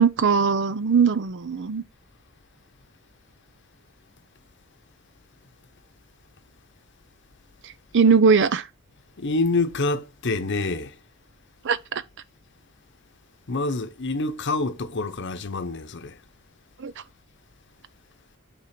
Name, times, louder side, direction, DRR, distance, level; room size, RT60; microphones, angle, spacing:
voice 1, 0.0-1.8 7.9-8.7 11.6-12.0 16.8-16.9, right 5 dB, 60° right, 0.6 m, -20 dB
voice 2, 9.2-11.0 13.5-16.2, left 3 dB, 60° left, 0.8 m, -27 dB
8.8 x 3.7 x 5.9 m
head